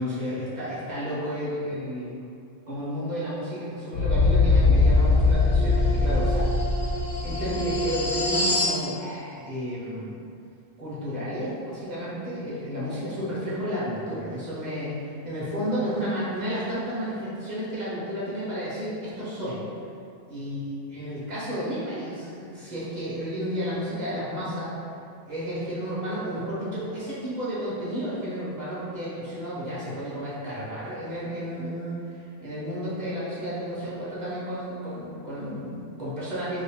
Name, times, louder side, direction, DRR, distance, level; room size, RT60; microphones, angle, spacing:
voice 1, 0.0-2.2 2.7-6.4 6.8-6.9 7.2-10.2 10.8-19.6 20.3-20.6 20.9-24.7 25.3-36.6, equal, 40° right, -9 dB, 0.9 m, -32 dB
sound 1, 3.9-8.8, left 3 dB, 80° left, 1.1 m, -21 dB
2.9 x 2.7 x 3.4 m, 2.5 s
omnidirectional pair, 1.3 m